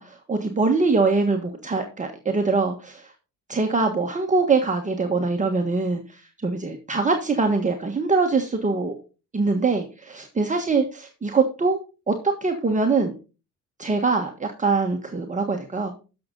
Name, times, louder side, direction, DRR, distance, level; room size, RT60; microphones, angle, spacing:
voice 1, 0.0-3.1 3.5-9.0 9.3-11.8 12.1-13.1 13.8-15.9, right 4 dB, 25° right, 2 dB, 1.5 m, -23 dB
11.0 x 6.6 x 3.9 m, 0.33 s
cardioid pair, 90°, 30 cm